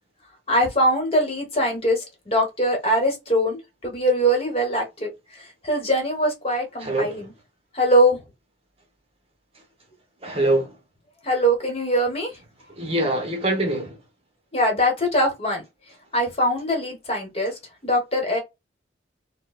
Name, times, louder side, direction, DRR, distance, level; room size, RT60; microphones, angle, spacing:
voice 1, 0.5-7.3 7.7-8.2 11.2-12.3 14.5-15.6 16.1-17.5 17.8-18.4, equal, 30° left, 1.2 m, -22 dB
voice 2, 6.8-7.3 10.2-10.8 12.8-14.0, right 1 dB, 30° right, 0.9 m, -24 dB
4.5 x 2.2 x 2.3 m
head